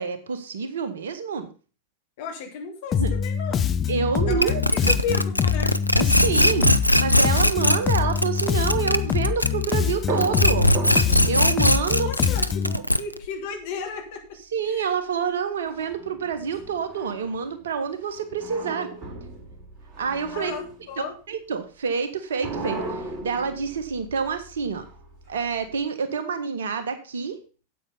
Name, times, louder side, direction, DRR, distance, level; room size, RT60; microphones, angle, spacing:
voice 1, 0.0-1.5 3.0-3.1 3.9-4.9 6.0-10.7 11.2-12.1 12.7-12.8 14.5-18.9 20.0-20.5 21.0-24.8 25.3-27.4, right 6 dB, 65° right, 9 dB, 1.5 m, -27 dB
voice 2, 2.2-3.7 4.2-5.8 11.8-14.4 14.7-14.9 20.3-21.1, left 5 dB, 50° left, 3 dB, 2.8 m, -34 dB
Bass guitar, 2.9-12.8, left 8 dB, 25° left, 0.5 m, -25 dB
sound 1, 4.4-9.9 10.2-13.3, left 1 dB, 90° left, 0.5 m, -20 dB
sound 2, 10.1-13.5 15.7-17.6 18.1-21.0 22.3-25.7, right 2 dB, 30° right, 3.7 m, -37 dB
8.5 x 8.3 x 5.3 m, 0.36 s
figure-of-eight pair, 90°, 0 cm